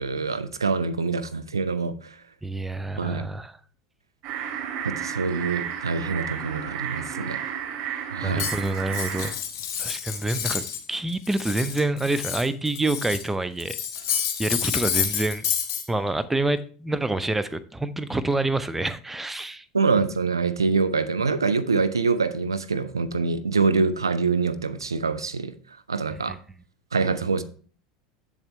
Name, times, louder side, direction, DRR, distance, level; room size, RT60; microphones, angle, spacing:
voice 1, 0.0-2.2 3.0-3.3 4.8-7.4 8.1-8.5 19.7-26.4 26.9-27.4, right 4 dB, 90° right, 0.5 m, -25 dB
voice 2, 2.4-3.5 8.2-9.4 9.8-10.6 10.9-13.8 14.4-15.4 15.9-19.6, right 2 dB, 10° right, 0.6 m, -27 dB
sound 1, 4.2-9.3, right 9 dB, 55° right, 2.8 m, -32 dB
Cutlery silverware, 8.4-10.8 11.1-13.3 13.6-15.8, left 8 dB, 65° left, 1.3 m, -29 dB
7.9 x 7.2 x 3.1 m
hypercardioid pair, 80°, 2 cm